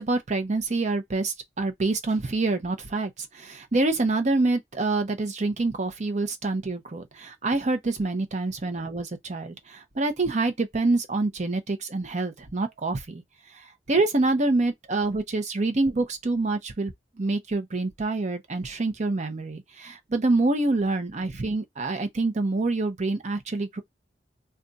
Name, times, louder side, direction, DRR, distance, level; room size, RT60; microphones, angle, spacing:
voice 1, 0.0-13.2 13.5-23.8, right 2 dB, 40° right, 0.7 m, -26 dB
2.5 x 2.2 x 3.9 m
head